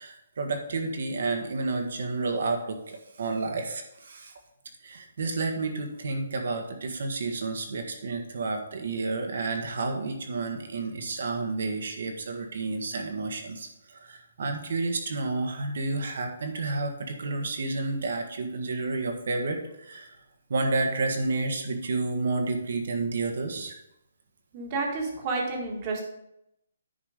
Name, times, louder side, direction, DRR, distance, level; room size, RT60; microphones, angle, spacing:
voice 1, 0.0-4.3 4.8-20.2 20.5-23.7, right 3 dB, 60° right, 4 dB, 1.6 m, -30 dB
voice 2, 24.5-26.0, right 3 dB, 25° right, 1 dB, 1.7 m, -30 dB
9.7 x 5.0 x 5.1 m, 0.82 s
hypercardioid pair, 170°, 0 cm